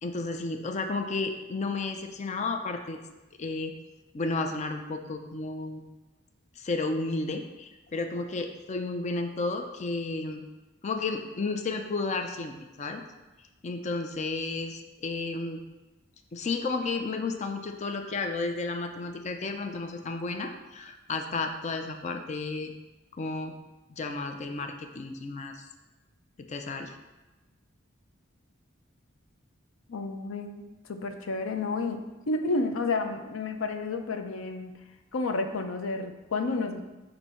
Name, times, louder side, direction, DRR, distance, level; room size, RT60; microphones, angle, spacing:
voice 1, 0.0-3.0 3.4-3.7 4.1-5.8 6.6-10.4 10.8-13.0 13.6-15.6 16.3-22.7 23.2-23.5 23.9-25.7 26.5-27.0, left 3 dB, 35° left, 5 dB, 0.4 m, -32 dB
voice 2, 29.9-34.7 35.1-36.8, left 3 dB, 85° left, 6 dB, 0.5 m, -31 dB
6.9 x 2.7 x 5.6 m, 1.1 s
head